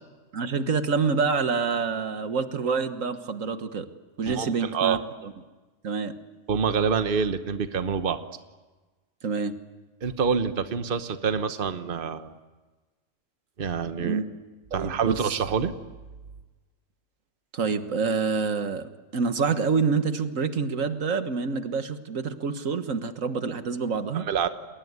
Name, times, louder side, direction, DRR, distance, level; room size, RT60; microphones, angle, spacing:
voice 1, 0.3-3.9 4.2-5.3 5.8-6.1 9.2-9.5 14.0-14.2 14.7-15.4 17.5-24.3, right 5 dB, 85° right, 9 dB, 1.8 m, -27 dB
voice 2, 4.3-5.0 6.5-8.2 10.0-12.3 13.6-14.2 14.7-15.7 24.1-24.5, right 6 dB, 45° right, 10 dB, 1.2 m, -26 dB
30.0 x 20.5 x 9.6 m, 1.3 s
omnidirectional pair, 1.3 m